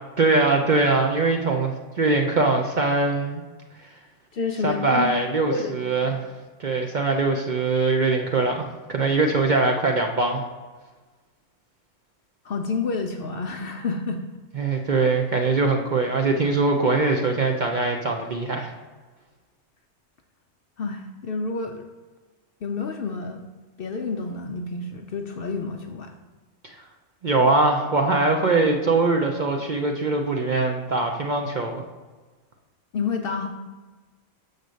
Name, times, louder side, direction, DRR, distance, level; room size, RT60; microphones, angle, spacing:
voice 1, 0.2-3.4 4.6-6.2 6.6-10.4 14.5-18.7 26.6-26.8 27.2-31.8, right 3 dB, 50° right, 3 dB, 0.6 m, -22 dB
voice 2, 4.3-5.1 5.5-6.0 12.4-14.2 20.8-21.9 22.6-23.4 23.8-26.1 32.9-33.5, left 4 dB, 60° left, 4 dB, 0.7 m, -29 dB
6.6 x 4.0 x 6.3 m, 1.3 s
omnidirectional pair, 1.3 m